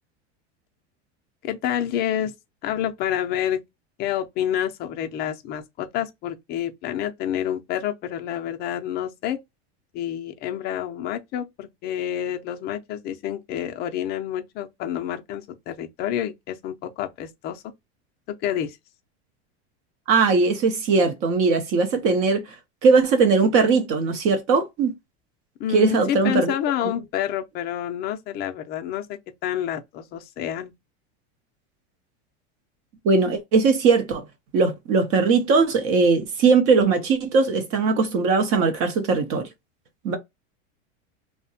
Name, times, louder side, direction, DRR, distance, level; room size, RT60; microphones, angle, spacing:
voice 1, 1.4-2.3 2.6-3.6 4.0-9.4 9.9-17.6 18.4-18.8 25.6-30.7, left 10 dB, 30° left, 0.4 m, -28 dB
voice 2, 20.1-22.4 22.8-24.9 25.7-26.5 26.8-26.9 33.0-34.2 34.5-39.5 40.0-40.2, right 4 dB, 45° right, 0.6 m, -20 dB
2.7 x 2.1 x 2.6 m
supercardioid pair, 150°, 33 cm